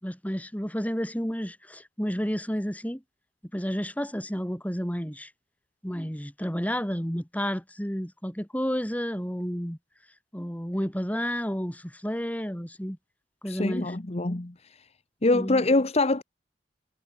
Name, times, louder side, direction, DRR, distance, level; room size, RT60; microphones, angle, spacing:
voice 1, 0.0-3.0 3.5-5.3 5.8-9.8 10.3-13.0 13.4-13.9 15.3-15.6, equal, 10° left, 5.2 m, -31 dB
voice 2, 13.5-14.9 15.2-16.2, left 2 dB, 35° left, 1.1 m, -25 dB
head